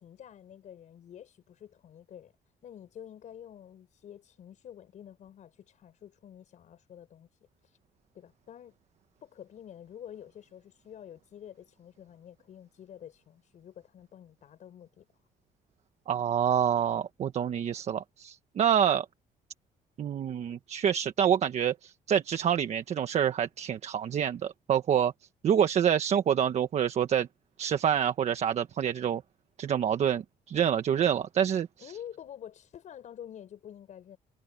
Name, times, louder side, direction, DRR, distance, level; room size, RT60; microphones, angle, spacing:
voice 1, 0.0-2.3 2.6-7.3 7.6-7.8 8.1-8.7 9.2-15.1 31.8-34.2, left 10 dB, 55° left, 6.7 m, -48 dB
voice 2, 16.1-19.1 20.0-25.1 25.4-27.3 27.6-29.2 29.6-31.7, right 9 dB, 45° right, 1.2 m, -27 dB
cardioid pair, 145°, 15 cm